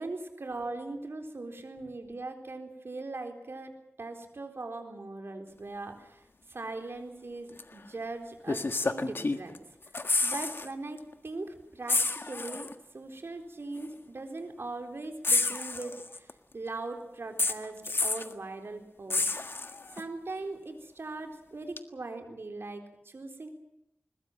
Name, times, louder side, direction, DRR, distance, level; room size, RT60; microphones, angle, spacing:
voice 1, 0.0-3.7 4.0-9.6 10.2-12.7 12.9-19.4 20.0-23.5, right 2 dB, 70° right, 5 dB, 4.0 m, -40 dB
sound 1, 7.6-7.7 8.5-9.6 9.8-10.7 11.0-11.1 11.9-12.7 13.8-13.9 15.2-16.3 17.4-18.3 19.1-20.0 21.8-21.9, left 3 dB, 65° left, 1.6 m, -29 dB
21.0 x 21.0 x 7.7 m, 0.81 s
wide cardioid pair, 60°, 4 cm